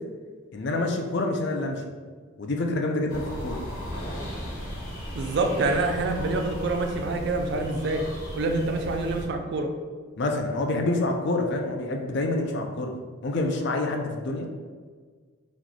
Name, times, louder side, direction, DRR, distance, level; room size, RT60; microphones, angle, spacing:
voice 1, 0.5-1.8 2.4-3.6 10.2-12.9 13.2-14.5, left 2 dB, 50° left, 3 dB, 0.4 m, -27 dB
sound 1, 3.1-9.3, equal, 85° left, 1.2 m, -36 dB
voice 2, 5.1-8.1 8.4-9.7, right 2 dB, 50° right, 4 dB, 0.3 m, -26 dB
3.0 x 2.2 x 4.0 m, 1.5 s
head